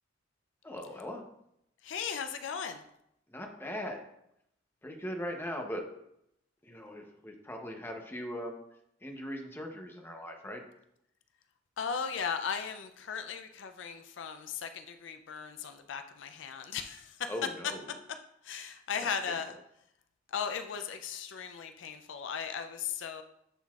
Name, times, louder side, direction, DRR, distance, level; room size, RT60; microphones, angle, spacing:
voice 1, 0.6-1.2 3.3-4.0 4.8-5.8 6.6-8.6 9.0-10.6 17.3-17.9 19.2-19.4, equal, 10° left, 3 dB, 0.7 m, -39 dB
voice 2, 1.8-2.8 11.8-17.3 18.4-19.5 20.3-23.2, left 6 dB, 75° left, 8 dB, 0.4 m, -37 dB
10.5 x 3.9 x 2.4 m, 0.78 s
head